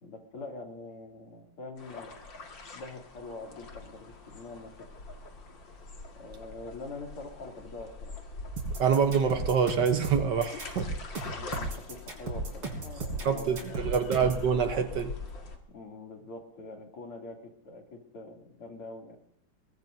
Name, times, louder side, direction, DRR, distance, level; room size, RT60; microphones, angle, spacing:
voice 1, 0.0-2.1 2.7-4.9 6.2-8.1 11.4-13.9 15.7-19.2, left 2 dB, 80° left, 3.8 m, -44 dB
sound 1, 1.8-15.6, left 3 dB, 60° left, 2.6 m, -44 dB
sound 2, 8.6-14.5, right 3 dB, 85° right, 4.7 m, -35 dB
voice 2, 8.8-10.9 13.2-15.1, right 6 dB, 60° right, 1.5 m, -26 dB
22.5 x 19.5 x 2.7 m
omnidirectional pair, 2.4 m